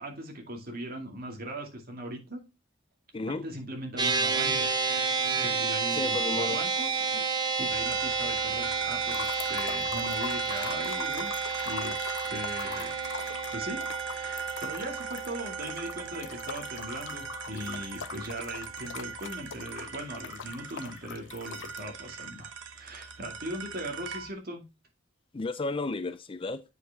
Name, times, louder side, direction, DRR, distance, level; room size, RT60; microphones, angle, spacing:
voice 1, 0.0-2.4 3.3-6.9 7.4-11.3 11.6-13.0 13.5-24.6, right 1 dB, 55° right, 2.2 m, -39 dB
sound 1, 4.0-17.5, right 4 dB, 25° right, 1.1 m, -31 dB
voice 2, 5.9-6.6 25.3-26.6, left 3 dB, 30° left, 0.5 m, -32 dB
sound 2, 7.7-24.3, right 5 dB, 90° right, 0.9 m, -41 dB
sound 3, 9.1-21.8, left 6 dB, 90° left, 0.7 m, -42 dB
8.0 x 5.2 x 3.5 m
head